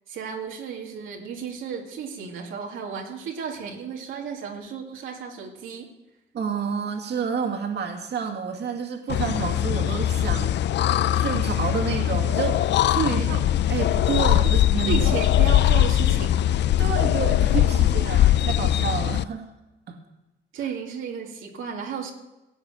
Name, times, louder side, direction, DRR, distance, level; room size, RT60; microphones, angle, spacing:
voice 1, 0.1-5.9 13.1-13.4 14.4-14.5 14.9-16.3 20.5-22.1, right 6 dB, 85° right, -1 dB, 2.3 m, -33 dB
voice 2, 6.3-13.4 13.7-15.1 16.8-19.5 19.9-20.0, right 6 dB, 60° right, 2 dB, 2.2 m, -29 dB
sound 1, 9.1-19.2, left 12 dB, 60° left, 0.4 m, -21 dB
17.0 x 7.1 x 8.8 m, 1.0 s
cardioid pair, 90°, 20 cm